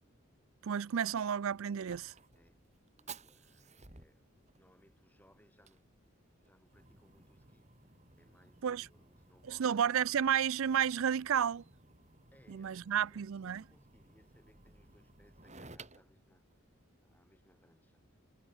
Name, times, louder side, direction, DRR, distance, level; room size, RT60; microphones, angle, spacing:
voice 1, 0.6-2.1 8.6-8.9 9.5-11.6 12.5-13.6, right 8 dB, 65° right, 0.4 m, -31 dB
Fire, 1.0-17.2, right 4 dB, 30° right, 5.3 m, -58 dB
voice 2, 2.3-2.7 3.0-9.7 12.3-16.5 17.0-18.2, equal, 10° left, 6.6 m, -68 dB
head